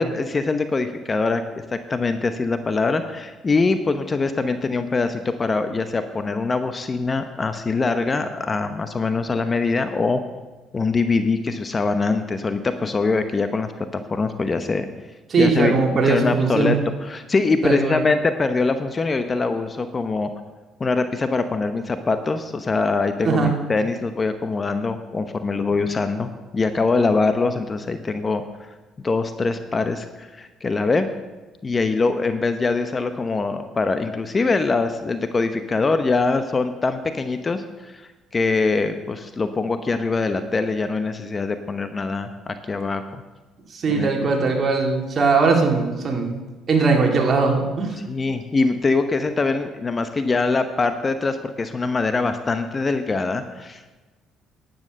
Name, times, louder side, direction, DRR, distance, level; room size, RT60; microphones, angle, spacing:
voice 1, 0.0-10.2 10.7-14.9 15.4-15.7 16.0-16.8 17.1-20.3 20.8-28.4 29.0-31.1 31.6-43.2 43.9-44.1 48.1-53.8, left 3 dB, 30° left, 9 dB, 0.9 m, -23 dB
voice 2, 15.3-16.7 17.6-18.0 23.2-23.5 43.7-46.4 46.7-48.0, right 4 dB, 45° right, 1 dB, 2.6 m, -20 dB
11.0 x 9.1 x 6.5 m, 1.2 s
supercardioid pair, 80°, 0 cm